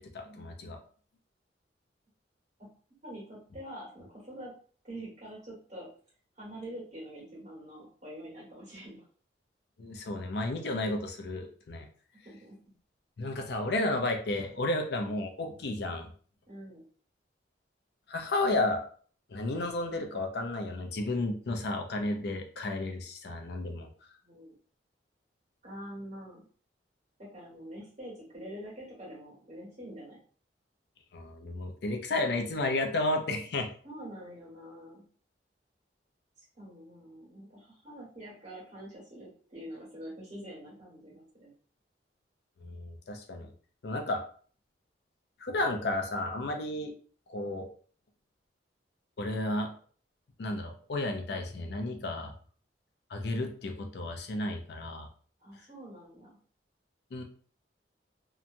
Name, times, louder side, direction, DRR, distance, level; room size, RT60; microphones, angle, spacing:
voice 1, 0.1-0.8 9.8-11.9 13.2-16.1 18.1-18.8 19.3-23.9 31.1-33.7 42.6-43.5 43.8-44.2 45.4-46.9 47.3-47.7 49.2-49.7 50.4-52.3 53.1-55.1 57.1-57.2, left 2 dB, 60° left, 4 dB, 0.5 m, -32 dB
voice 2, 3.0-4.5 4.8-5.9 6.4-9.1 12.2-12.6 16.5-16.8 24.2-24.5 25.6-26.5 27.3-30.2 33.8-35.0 36.4-41.5 55.4-56.3, right 1 dB, 40° right, -5 dB, 1.4 m, -45 dB
2.8 x 2.2 x 2.5 m, 0.44 s
head